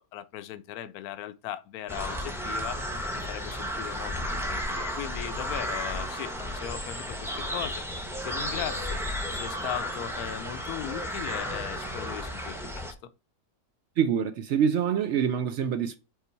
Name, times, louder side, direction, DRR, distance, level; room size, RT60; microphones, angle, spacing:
voice 1, 0.0-9.0 9.3-13.1, left 11 dB, 75° left, 1.0 m, -38 dB
sound 1, 1.9-12.9, equal, ahead, 0.8 m, -33 dB
voice 2, 14.0-16.0, right 8 dB, 70° right, 0.7 m, -25 dB
5.6 x 4.0 x 4.5 m
omnidirectional pair, 1.7 m